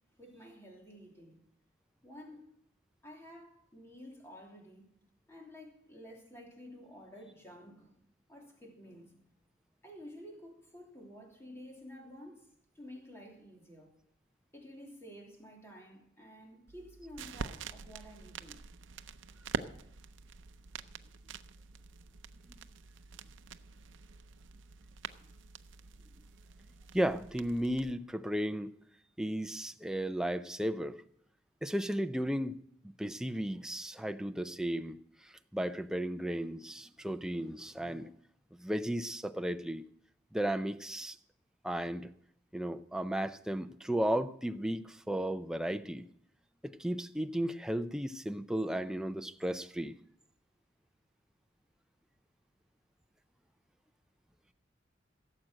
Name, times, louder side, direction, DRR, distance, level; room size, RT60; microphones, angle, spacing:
voice 1, 0.2-1.4 2.0-2.4 3.0-4.9 5.3-8.0 8.3-9.1 9.8-12.5 12.8-13.9 14.5-18.6, equal, 15° left, 3.0 m, -51 dB
sound 1, 16.7-27.9, right 5 dB, 80° right, 0.6 m, -45 dB
voice 2, 26.9-28.7 29.2-31.0 31.6-32.6 32.8-35.0 35.2-38.1 38.6-39.8 40.3-41.2 41.6-42.1 42.5-46.1 46.6-49.9, right 1 dB, 5° right, 0.5 m, -34 dB
16.5 x 7.7 x 6.3 m
head